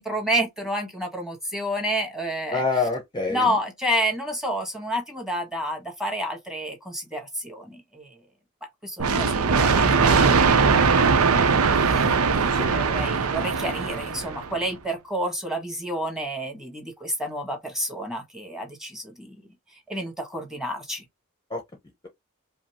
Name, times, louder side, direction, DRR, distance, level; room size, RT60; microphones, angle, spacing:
voice 1, 0.0-2.6 3.3-8.2 8.8-19.4 19.9-21.0, equal, ahead, 1.3 m, -30 dB
voice 2, 2.5-3.6 12.5-13.0 21.5-21.6, left 3 dB, 20° left, 0.7 m, -27 dB
sound 1, 9.0-14.6, right 5 dB, 80° right, 0.6 m, -20 dB
5.1 x 2.0 x 2.9 m
head